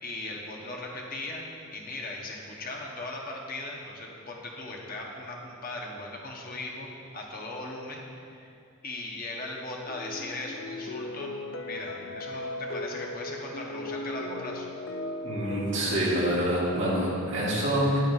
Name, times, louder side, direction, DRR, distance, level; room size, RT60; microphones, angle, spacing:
voice 1, 0.0-6.9 7.1-8.0 8.3-8.5 8.8-11.3 11.6-14.7, left 2 dB, 40° left, -1 dB, 0.8 m, -38 dB
sound 1, 9.9-16.0, left 1 dB, 60° left, 0.4 m, -37 dB
voice 2, 15.2-18.0, equal, 55° right, -7 dB, 2.0 m, -26 dB
9.2 x 9.1 x 2.4 m, 2.5 s
head